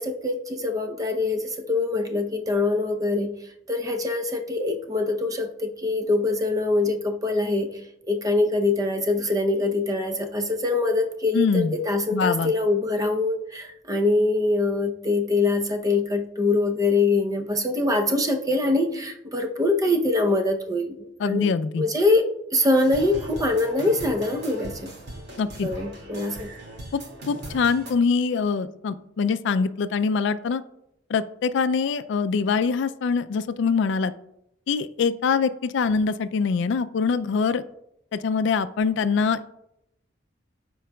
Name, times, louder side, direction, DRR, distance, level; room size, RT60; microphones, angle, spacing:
voice 1, 0.0-3.3 3.7-21.5 21.8-24.9 25.6-26.5, left 2 dB, 20° right, 5 dB, 0.6 m, -24 dB
voice 2, 11.3-11.7 12.1-12.5 21.2-21.8 25.4-25.7 26.9-27.0 27.3-30.6 31.1-34.1 34.7-37.7 38.1-39.4, left 5 dB, 65° left, 12 dB, 0.3 m, -24 dB
sound 1, 22.8-27.9, right 1 dB, 60° right, 2.2 m, -39 dB
13.5 x 4.7 x 2.2 m, 0.80 s
head